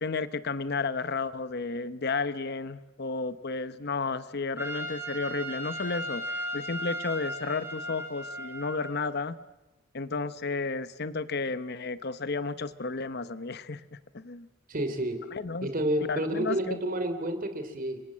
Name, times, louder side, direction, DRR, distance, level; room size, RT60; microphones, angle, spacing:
voice 1, 0.0-9.4 9.9-14.5 15.3-15.7 16.1-16.8, left 4 dB, 50° left, 14 dB, 0.9 m, -32 dB
Trumpet, 4.6-9.2, equal, 10° right, 3.3 m, -36 dB
voice 2, 14.7-15.2 15.6-18.0, right 1 dB, 45° right, 9 dB, 3.1 m, -30 dB
30.0 x 23.5 x 7.5 m, 1.1 s
head